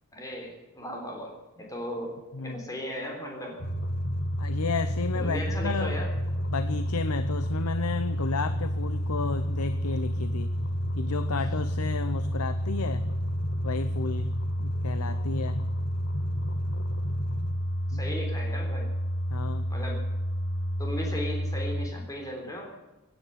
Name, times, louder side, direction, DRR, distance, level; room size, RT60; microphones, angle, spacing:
voice 1, 0.1-2.1 2.4-3.6 5.2-6.1 17.9-18.9 19.7-20.0 20.8-22.7, equal, 15° left, 0 dB, 3.6 m, -36 dB
voice 2, 2.3-2.6 4.4-6.1 6.5-10.5 11.0-13.1 13.6-14.3 14.6-15.7 17.9-18.1 19.3-19.7, left 4 dB, 75° left, 12 dB, 0.7 m, -32 dB
sound 1, 3.6-21.9, equal, 55° left, 1.6 m, -30 dB
17.0 x 9.6 x 8.0 m, 1.0 s
head